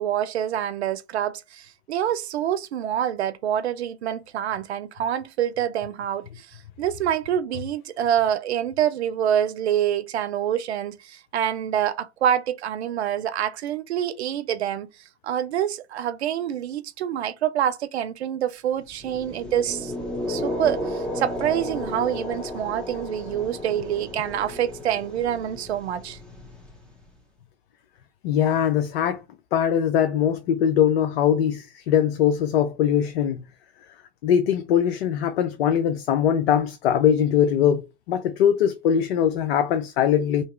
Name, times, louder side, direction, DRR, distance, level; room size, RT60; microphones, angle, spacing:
voice 1, 0.0-6.5 6.8-14.9 15.2-19.9 20.3-26.2, right 10 dB, 85° right, 0.6 m, -26 dB
sound 1, 18.9-27.0, left 1 dB, 5° left, 1.2 m, -33 dB
voice 2, 28.2-29.2 29.5-33.4 34.2-37.8 38.1-40.4, left 9 dB, 70° left, 0.6 m, -21 dB
2.9 x 2.8 x 4.3 m
hypercardioid pair, 105°, 32 cm